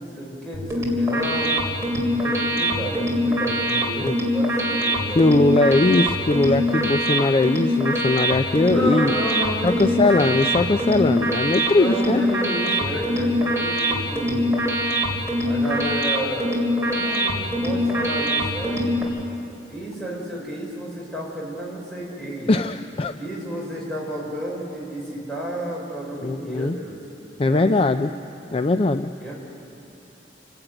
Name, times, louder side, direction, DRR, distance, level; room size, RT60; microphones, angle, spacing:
voice 1, 0.0-1.6 2.2-5.3 8.7-10.3 11.7-14.5 15.4-19.0 19.7-22.5 23.2-27.0 27.5-28.0 29.2-29.3, right 1 dB, 5° left, -4 dB, 5.5 m, -31 dB
sound 1, 0.5-19.0, equal, 15° right, 3.2 m, -23 dB
voice 2, 5.2-9.1 9.6-12.2 22.5-23.1 26.2-26.8 27.4-28.1 28.5-29.1, left 2 dB, 35° left, 9 dB, 0.4 m, -20 dB
28.5 x 12.0 x 9.1 m, 2.8 s
head